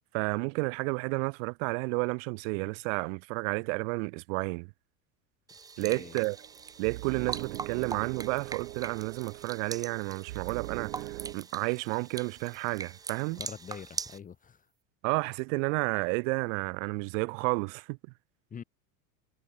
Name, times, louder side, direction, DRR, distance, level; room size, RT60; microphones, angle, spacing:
voice 1, 0.1-4.7 5.8-6.4 6.8-13.4 15.0-18.0, right 33 dB, 60° right, 2.2 m, -31 dB
sound 1, 5.5-14.2, right 5 dB, 10° right, 0.6 m, -42 dB
voice 2, 5.8-6.2 13.3-14.7 18.5-18.6, left 7 dB, 20° left, 1.9 m, -44 dB
sound 2, 5.9-11.4, right 17 dB, 85° right, 4.0 m, -42 dB
supercardioid pair, 155°, 45 cm